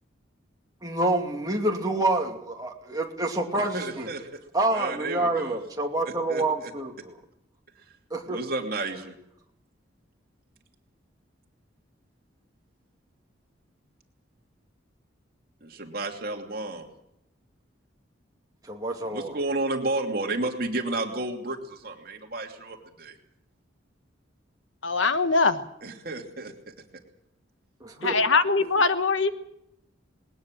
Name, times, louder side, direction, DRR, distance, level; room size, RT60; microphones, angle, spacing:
voice 1, 0.8-4.1 4.5-7.1 8.1-8.4 18.7-19.3 27.8-28.2, right 2 dB, 20° right, 1 dB, 2.7 m, -27 dB
voice 2, 3.5-4.4 4.7-5.6 6.1-6.7 8.3-9.2 15.6-16.9 19.0-23.1 25.8-26.7, right 2 dB, 50° right, 2 dB, 2.8 m, -32 dB
voice 3, 24.8-25.6 28.0-29.3, left 4 dB, 85° left, 10 dB, 1.4 m, -22 dB
20.0 x 19.5 x 7.7 m, 0.80 s
head